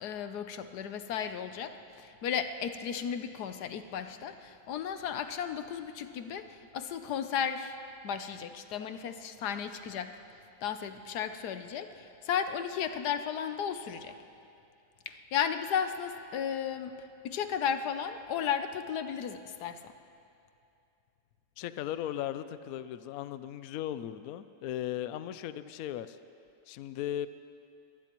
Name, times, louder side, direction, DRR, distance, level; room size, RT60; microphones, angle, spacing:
voice 1, 0.0-7.7 8.0-10.1 10.6-14.1 15.1-17.0 17.2-19.8, left 8 dB, 65° left, 9 dB, 1.1 m, -34 dB
voice 2, 21.6-26.2 26.7-27.3, left 11 dB, 85° left, 13 dB, 0.7 m, -37 dB
23.0 x 19.0 x 3.0 m, 2.6 s
omnidirectional pair, 2.1 m